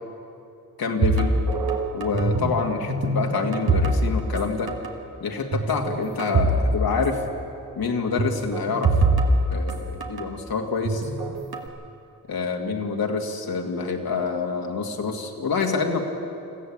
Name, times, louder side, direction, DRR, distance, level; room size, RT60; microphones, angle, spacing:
voice 1, 0.8-1.3 1.9-4.7 5.2-7.2 7.8-9.0 9.5-11.0 12.3-16.0, left 4 dB, 65° left, 3 dB, 2.4 m, -27 dB
sound 1, 1.0-2.6 2.8-4.4 4.7-4.9 5.5-6.6 6.9-7.0 8.2-10.3 10.8-11.7, right 3 dB, 65° right, 2.0 m, -23 dB
21.0 x 14.5 x 8.8 m, 2.6 s
cardioid pair, 55°, 39 cm